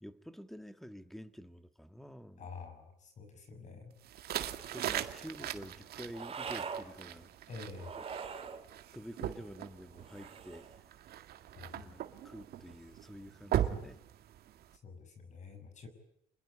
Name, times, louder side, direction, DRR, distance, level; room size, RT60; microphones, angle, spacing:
voice 1, 0.0-2.5 4.2-4.4 4.7-7.3 8.2-8.6 8.9-10.7 11.7-14.0, equal, ahead, 1.6 m, -49 dB
voice 2, 2.4-3.9 7.5-8.0 11.6-12.0 14.8-15.9, left 4 dB, 45° left, 6.1 m, -48 dB
sound 1, 4.0-14.8, right 11 dB, 65° right, 2.0 m, -40 dB
sound 2, 4.4-5.2 6.1-6.9 7.8-8.6 10.0-10.8, right 6 dB, 35° right, 2.8 m, -43 dB
27.5 x 21.0 x 9.9 m
cardioid pair, 110°, 17 cm